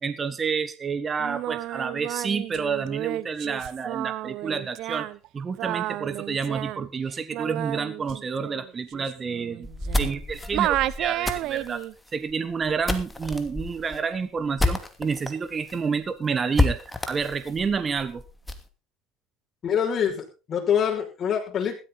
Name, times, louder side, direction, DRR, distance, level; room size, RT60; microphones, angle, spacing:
voice 1, 0.0-5.1 5.3-9.7 10.0-11.8 12.1-16.8 17.1-18.2, right 5 dB, 30° right, 13 dB, 1.4 m, -29 dB
Singing, 1.2-10.2 10.5-11.9, right 15 dB, 65° right, 0.7 m, -31 dB
sound 1, 9.6-15.3 15.7-15.8 16.0-16.1 16.5-18.7, left 2 dB, 10° left, 2.6 m, -29 dB
voice 2, 19.6-21.8, left 8 dB, 40° left, 0 dB, 5.9 m, -25 dB
15.5 x 12.5 x 4.0 m, 0.31 s
hypercardioid pair, 80°, 0 cm